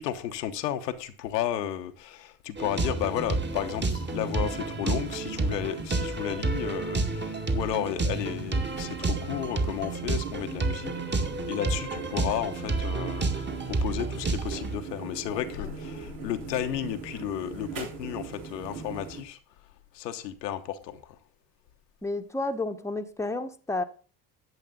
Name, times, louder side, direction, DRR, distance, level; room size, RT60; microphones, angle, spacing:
voice 1, 0.0-19.4 19.9-21.2, left 11 dB, 80° left, 1.2 m, -33 dB
sound 1, 2.6-14.8, right 3 dB, 20° right, 2.0 m, -30 dB
sound 2, 3.0-19.2, right 4 dB, 75° right, 4.0 m, -42 dB
voice 2, 22.0-23.8, left 2 dB, 5° left, 1.2 m, -31 dB
11.0 x 8.9 x 3.9 m
hypercardioid pair, 60°, 48 cm